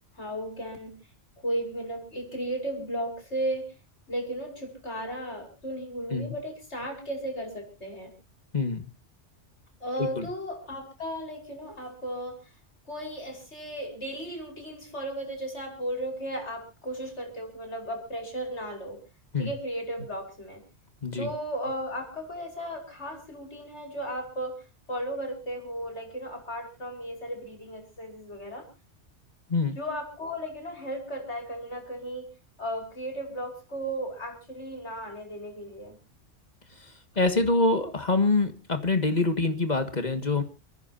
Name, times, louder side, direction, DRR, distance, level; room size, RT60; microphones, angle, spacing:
voice 1, 0.1-0.9 1.4-3.6 4.1-8.1 9.8-12.4 12.9-19.0 19.4-20.6 21.2-28.7 29.8-32.3 32.6-36.0, right 1 dB, 65° left, 2 dB, 6.1 m, -35 dB
voice 2, 8.5-8.9 10.0-10.3 19.3-19.5 21.0-21.3 29.5-29.8 37.2-40.4, left 3 dB, 35° left, 9 dB, 1.9 m, -25 dB
30.0 x 10.5 x 2.7 m, 0.31 s
omnidirectional pair, 1.2 m